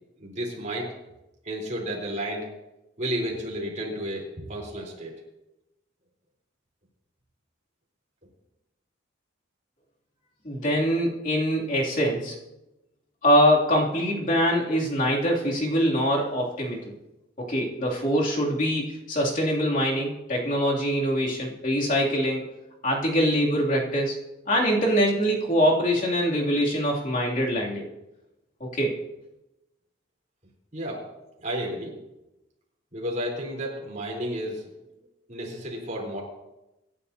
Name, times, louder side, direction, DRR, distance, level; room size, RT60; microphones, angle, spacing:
voice 1, 0.2-0.9 1.4-2.5 3.0-5.1 30.7-31.1 31.4-31.9 32.9-34.7 35.3-36.2, equal, 40° right, -2 dB, 4.0 m, -32 dB
voice 2, 10.4-12.4 13.2-16.9 17.4-22.4 22.8-24.2 24.5-27.9 28.6-29.0, equal, 45° left, -3 dB, 2.8 m, -24 dB
25.0 x 11.0 x 2.8 m, 0.96 s
head